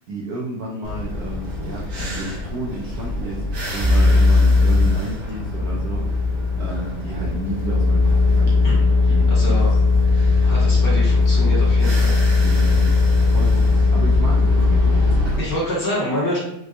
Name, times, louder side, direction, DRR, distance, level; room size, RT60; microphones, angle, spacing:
voice 1, 0.0-9.6 12.4-15.4, right 2 dB, 85° right, -3 dB, 0.8 m, -32 dB
sound 1, 0.8-15.4, left 1 dB, 60° right, 0.9 m, -29 dB
sound 2, 3.8-5.0 5.4-15.2, left 3 dB, 65° left, 1.2 m, -17 dB
voice 2, 9.3-9.7 10.4-12.2 15.4-16.4, left 1 dB, 50° left, -6 dB, 1.6 m, -26 dB
4.2 x 2.3 x 2.4 m, 0.81 s
omnidirectional pair, 2.3 m